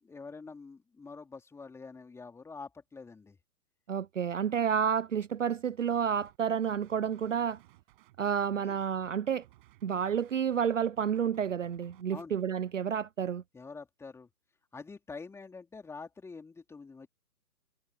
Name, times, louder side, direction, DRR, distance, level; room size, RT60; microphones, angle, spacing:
voice 1, 0.0-3.4 8.6-8.8 12.1-12.3 13.5-14.3 14.7-17.1, left 4 dB, 5° left, 3.8 m, -46 dB
voice 2, 3.9-7.6 8.2-9.4 9.8-13.4, right 8 dB, 50° right, 0.9 m, -30 dB
sound 1, 5.9-6.4 6.6-12.0, right 17 dB, 30° right, 6.4 m, -61 dB
figure-of-eight pair, 130°, 49 cm